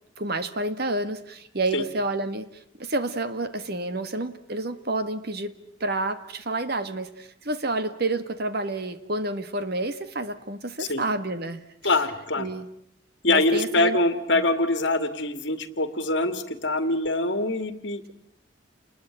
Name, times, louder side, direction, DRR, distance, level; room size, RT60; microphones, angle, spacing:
voice 1, 0.2-2.5 2.8-11.6 12.4-12.7 13.3-14.0 14.3-14.4, right 2 dB, 50° right, 11 dB, 1.7 m, -29 dB
voice 2, 11.8-12.5 13.2-18.1, left 2 dB, 60° left, 10 dB, 2.2 m, -24 dB
29.0 x 20.5 x 9.0 m, 0.73 s
head